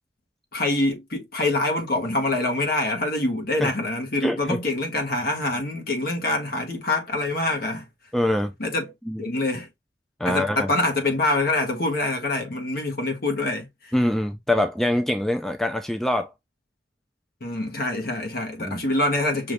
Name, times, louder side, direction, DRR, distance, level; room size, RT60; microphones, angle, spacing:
voice 1, 0.5-7.9 8.6-8.9 9.2-9.7 10.2-13.9 17.4-19.5, left 2 dB, 55° left, 1.4 m, -25 dB
voice 2, 4.2-4.6 8.1-8.5 9.1-9.2 10.2-10.7 13.9-16.3 18.6-18.8, left 1 dB, ahead, 0.3 m, -24 dB
5.8 x 2.7 x 3.2 m
head